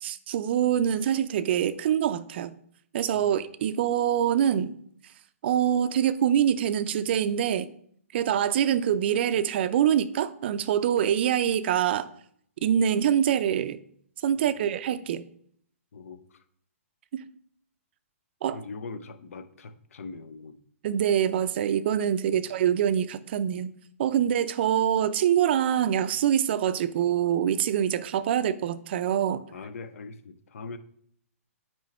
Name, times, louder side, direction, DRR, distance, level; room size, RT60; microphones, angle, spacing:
voice 1, 0.0-2.5 2.9-4.7 5.4-7.7 8.1-12.1 12.6-13.8 14.2-15.2 17.1-17.2 18.4-18.6 20.8-23.7 24.0-29.5, right 9 dB, 45° right, 0.4 m, -25 dB
voice 2, 14.4-14.7 15.9-16.4 18.5-20.6 22.3-22.4 29.5-30.8, left 4 dB, 70° left, 0.7 m, -41 dB
8.9 x 3.1 x 4.2 m
hypercardioid pair, 155°, 8 cm